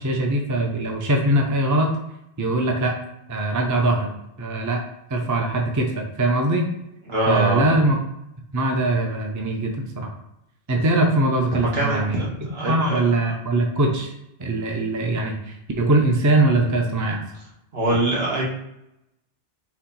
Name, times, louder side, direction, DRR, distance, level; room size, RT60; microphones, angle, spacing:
voice 1, 0.0-1.9 2.4-3.0 3.3-4.1 4.4-4.8 5.1-6.7 7.3-8.0 8.5-10.1 10.7-12.2 12.7-14.1 14.4-17.2, right 2 dB, 25° right, 2 dB, 0.5 m, -21 dB
voice 2, 7.1-7.6 11.5-13.1 17.7-18.4, right 1 dB, 75° right, -4 dB, 1.6 m, -24 dB
4.3 x 2.8 x 4.0 m, 0.82 s
omnidirectional pair, 1.0 m